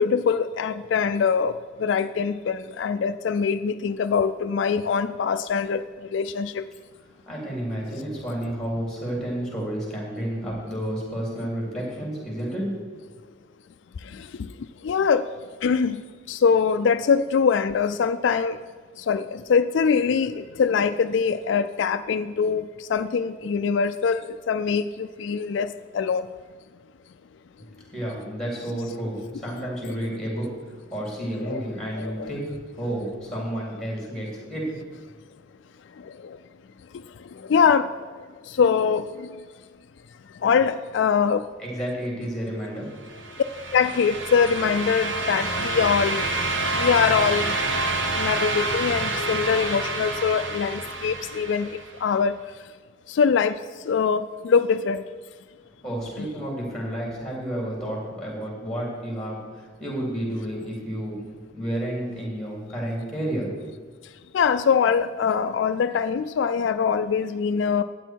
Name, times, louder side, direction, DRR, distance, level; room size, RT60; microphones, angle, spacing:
voice 1, 0.0-1.5 1.8-5.8 6.1-6.6 14.1-14.5 14.8-15.2 15.6-16.0 16.3-18.6 19.1-26.3 31.4-31.6 32.0-32.3 36.0-36.4 37.4-37.9 38.5-39.3 40.4-41.4 43.7-46.2 46.8-47.5 48.2-52.3 53.1-53.6 53.8-55.0 64.3-67.8, left 6 dB, 70° left, 11 dB, 0.3 m, -23 dB
voice 2, 7.3-13.1 27.6-30.5 30.9-34.8 41.6-43.1 55.8-61.2 61.5-63.5, right 1 dB, 5° left, -3 dB, 3.4 m, -31 dB
sound 1, 43.1-52.0, right 2 dB, 70° right, 1.2 m, -28 dB
12.0 x 9.0 x 4.5 m, 1.5 s
head